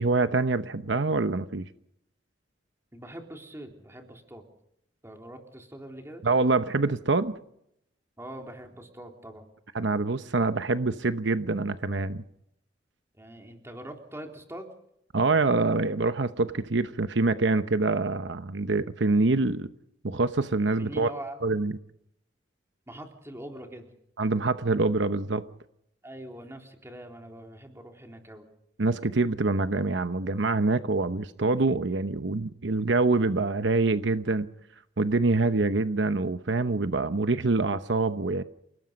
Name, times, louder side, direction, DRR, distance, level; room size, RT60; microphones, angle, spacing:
voice 1, 0.0-1.7 6.2-7.4 9.7-12.2 15.1-19.7 20.0-21.1 21.4-21.7 24.2-25.4 28.8-34.5 35.0-38.4, right 3 dB, 75° right, 0.9 m, -25 dB
voice 2, 2.9-4.4 5.0-6.2 8.2-9.5 13.1-14.7 20.8-21.4 22.9-23.9 26.0-28.5, right 1 dB, 15° right, 3.7 m, -43 dB
29.0 x 19.0 x 5.3 m
head